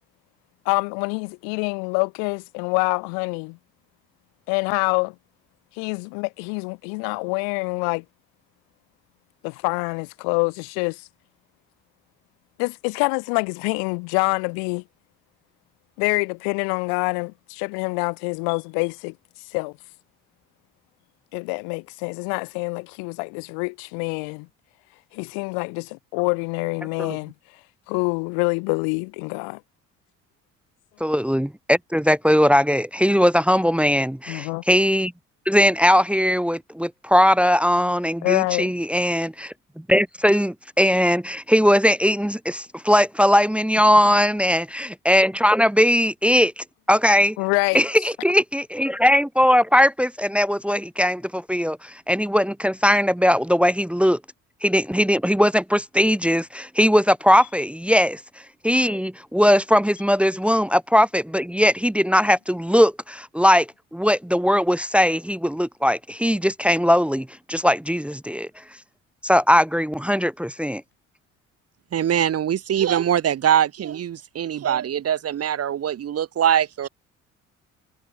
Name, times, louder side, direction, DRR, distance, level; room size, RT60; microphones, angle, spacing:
voice 1, 0.7-3.6 4.5-5.1 5.8-8.0 9.4-11.1 12.6-14.8 16.0-19.2 19.5-19.7 21.3-24.5 25.1-27.3 27.9-29.6 34.3-34.6 38.2-38.7 47.4-47.8, left 40 dB or more, 65° left, 2.2 m, -26 dB
voice 2, 31.0-35.1 35.5-39.5 39.9-47.4 47.7-54.2 54.6-58.2 58.6-68.5 69.2-70.8, equal, 5° right, 1.1 m, -19 dB
voice 3, 71.9-76.9, right 9 dB, 40° right, 1.2 m, -22 dB
figure-of-eight pair, 50°, 39 cm